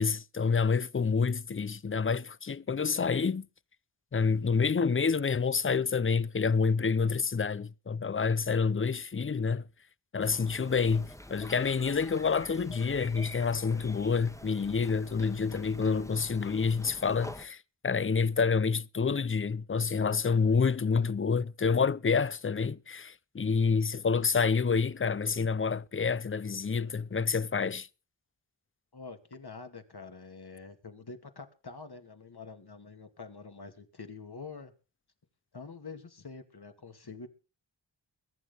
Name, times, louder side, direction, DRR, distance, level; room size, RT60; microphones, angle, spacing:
voice 1, 0.0-3.5 4.1-9.6 10.1-27.9, left 5 dB, 30° left, 0.6 m, -28 dB
sound 1, 10.2-17.5, left 1 dB, 5° left, 1.4 m, -47 dB
voice 2, 28.9-34.7 35.5-37.3, left 4 dB, 60° left, 2.5 m, -46 dB
22.5 x 9.2 x 3.9 m
wide cardioid pair, 50°, 44 cm